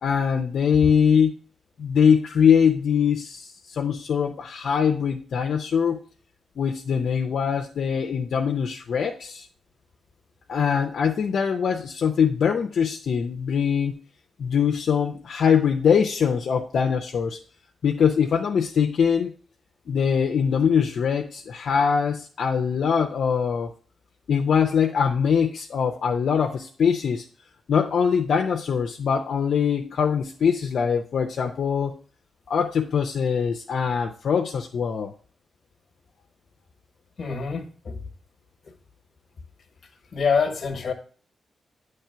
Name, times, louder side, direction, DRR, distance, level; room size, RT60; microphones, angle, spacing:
voice 1, 0.0-1.3 1.8-6.0 6.6-9.5 10.5-13.9 14.4-17.4 17.8-19.3 19.9-23.7 24.3-27.2 27.7-32.0 32.5-35.1, left 7 dB, 70° left, 0.6 m, -22 dB
voice 2, 37.2-38.0 40.1-40.9, left 5 dB, 50° left, 1.2 m, -25 dB
8.8 x 3.3 x 5.6 m
cardioid pair, 105°, 0 cm